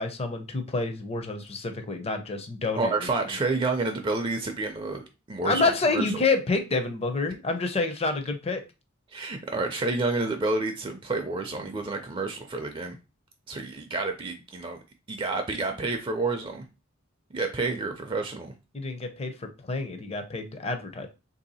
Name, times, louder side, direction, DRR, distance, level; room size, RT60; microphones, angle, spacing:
voice 1, 0.0-2.9 5.4-8.6 18.7-21.1, left 3 dB, 30° left, 7 dB, 0.6 m, -28 dB
voice 2, 2.7-6.2 9.1-13.0 13.5-14.8 15.1-16.6 17.3-18.5, right 3 dB, 25° right, 5 dB, 0.4 m, -29 dB
3.2 x 2.7 x 4.1 m, 0.29 s
head